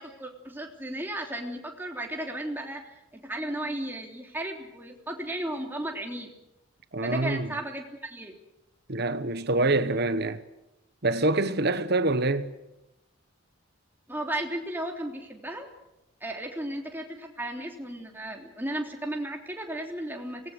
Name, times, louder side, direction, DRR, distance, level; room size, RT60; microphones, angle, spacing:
voice 1, 0.0-2.8 3.1-6.3 7.0-8.4 14.1-15.7 16.2-20.4, right 1 dB, 10° right, 3.3 m, -34 dB
voice 2, 6.9-7.5 8.9-10.4 11.0-12.5, right 2 dB, 50° right, 1.2 m, -25 dB
25.5 x 19.5 x 8.0 m
head